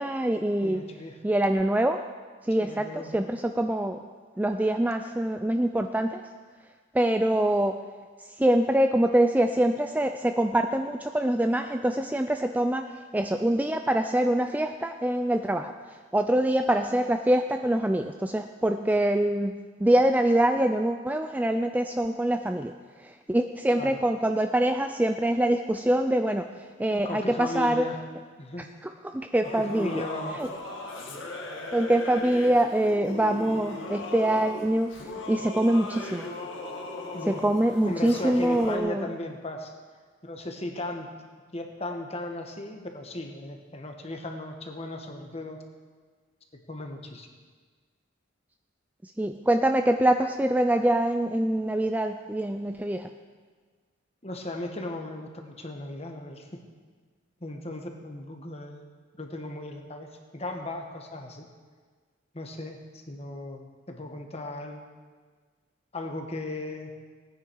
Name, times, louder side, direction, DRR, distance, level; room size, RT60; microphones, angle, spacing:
voice 1, 0.0-0.8 1.2-2.0 2.4-4.0 4.4-6.3 6.9-7.8 8.2-27.9 28.6-30.0 30.3-30.5 31.7-36.3 37.3-39.1 49.0-53.1, right 1 dB, 10° right, 6 dB, 0.3 m, -25 dB
voice 2, 0.6-1.2 2.6-3.1 23.7-24.0 26.9-28.0 28.4-28.7 29.4-30.4 37.1-37.4 37.8-39.7 40.2-41.1 41.5-45.6 46.5-47.3 54.2-56.6 57.4-58.8 59.2-61.4 62.3-64.8 65.9-66.9, left 2 dB, 30° left, 3 dB, 1.3 m, -36 dB
Singing / Musical instrument, 29.4-38.8, left 2 dB, 70° left, 1.8 m, -38 dB
18.0 x 9.7 x 4.7 m, 1.5 s
head